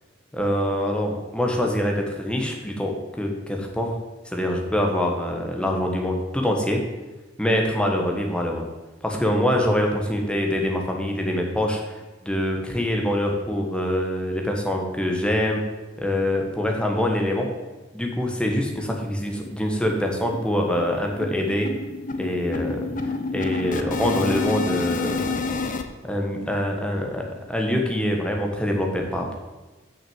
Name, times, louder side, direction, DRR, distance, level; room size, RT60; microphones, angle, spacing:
voice 1, 0.3-3.9 4.3-6.8 7.4-8.6 9.0-11.8 12.2-15.6 16.0-17.5 17.9-21.7 22.2-25.4 26.0-29.4, left 1 dB, 5° left, 1 dB, 1.3 m, -24 dB
sound 1, 18.6-18.7 19.0-19.1 19.4-19.6 19.9-25.8, left 3 dB, 45° left, 0.7 m, -29 dB
6.4 x 6.1 x 7.1 m, 1.1 s
head